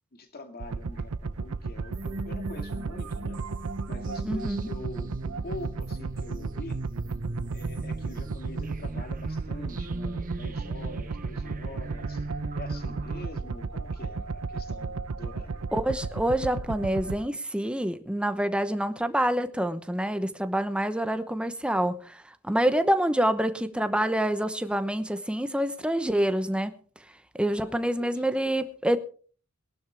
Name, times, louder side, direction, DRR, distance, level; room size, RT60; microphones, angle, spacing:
voice 1, 0.1-3.4 3.9-6.9 7.5-12.3 12.6-15.7 27.4-28.4, left 2 dB, 45° left, 2.2 m, -45 dB
sound 1, 0.6-17.2, right 4 dB, 85° right, 0.6 m, -34 dB
sound 2, 1.9-13.2, right 2 dB, 40° right, 0.8 m, -39 dB
voice 2, 4.2-4.7 15.7-26.7 27.3-29.0, right 1 dB, 5° right, 0.9 m, -27 dB
21.0 x 12.0 x 3.5 m
head